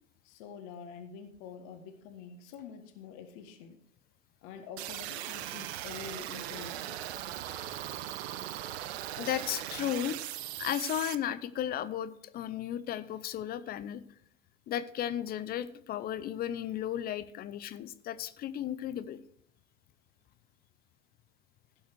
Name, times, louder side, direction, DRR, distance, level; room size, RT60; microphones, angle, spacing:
voice 1, 0.2-3.8 4.4-7.0, left 7 dB, 50° left, 6 dB, 1.7 m, -47 dB
sound 1, 4.8-11.1, right 13 dB, 55° right, 0.9 m, -39 dB
voice 2, 9.2-10.2 10.6-14.0 14.7-19.2, left 11 dB, 25° left, 15 dB, 0.6 m, -34 dB
16.5 x 5.6 x 4.7 m, 0.69 s
hypercardioid pair, 100°, 40 cm